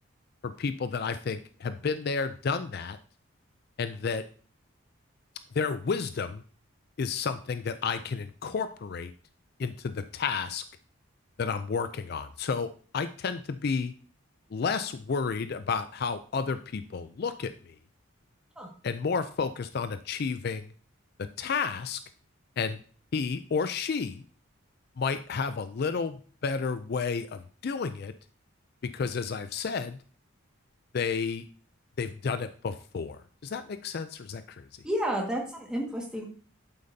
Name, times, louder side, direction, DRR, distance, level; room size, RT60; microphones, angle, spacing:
voice 1, 0.4-3.0 3.8-4.2 5.5-6.4 7.0-9.1 9.6-10.6 11.4-12.7 12.9-13.9 14.5-17.7 18.8-20.7 21.2-22.0 22.6-22.8 23.1-24.2 25.0-28.1 28.9-30.0 30.9-31.4 32.0-34.6, left 5 dB, 50° left, 11 dB, 0.4 m, -31 dB
voice 2, 34.8-36.2, equal, 5° right, -1 dB, 1.7 m, -31 dB
8.5 x 7.8 x 2.7 m, 0.42 s
head